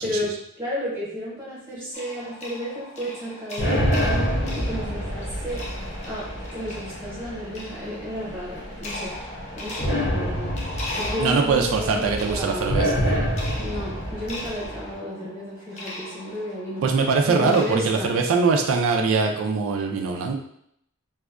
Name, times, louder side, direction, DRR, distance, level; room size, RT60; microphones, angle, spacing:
voice 1, 0.0-5.6 6.0-10.6 11.0-12.9 13.6-16.9 17.3-18.2, equal, 10° right, -7 dB, 0.9 m, -33 dB
sound 1, 1.9-17.7, left 1 dB, 30° left, 0.4 m, -39 dB
sound 2, 3.6-15.0, equal, 55° left, 0.8 m, -28 dB
voice 2, 11.2-13.2 16.8-20.4, right 4 dB, 70° right, 2 dB, 0.3 m, -22 dB
2.6 x 2.2 x 2.4 m, 0.71 s
head